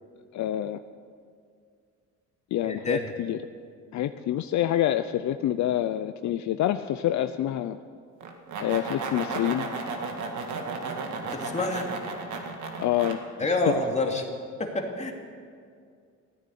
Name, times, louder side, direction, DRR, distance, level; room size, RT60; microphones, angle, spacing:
voice 1, 0.3-0.8 2.5-3.4 3.9-7.8 8.6-9.7 12.8-13.2 13.7-13.8, left 12 dB, 70° left, 10 dB, 0.6 m, -27 dB
voice 2, 2.6-3.1 11.3-11.9 13.4-14.3 14.6-15.1, left 2 dB, 20° left, 2 dB, 2.4 m, -27 dB
sound 1, 8.2-13.1, right 4 dB, 75° right, 1.9 m, -34 dB
15.5 x 9.8 x 8.5 m, 2.2 s
cardioid pair, 90°, 30 cm